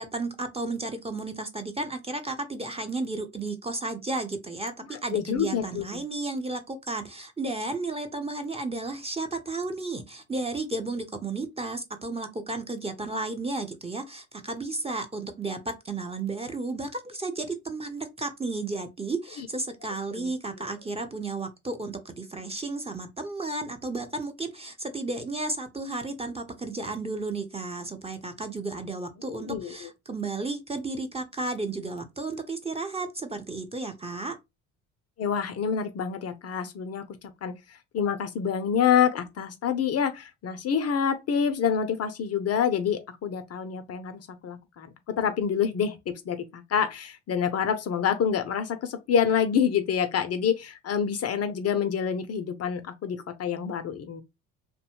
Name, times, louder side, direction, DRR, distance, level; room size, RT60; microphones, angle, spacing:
voice 1, 0.0-34.3, right 3 dB, 15° right, 0.6 m, -33 dB
voice 2, 4.9-6.0 20.1-20.3 29.3-29.9 35.2-44.9 45.2-54.2, left 7 dB, 40° left, 0.5 m, -27 dB
2.6 x 2.2 x 2.9 m
hypercardioid pair, 60°, 42 cm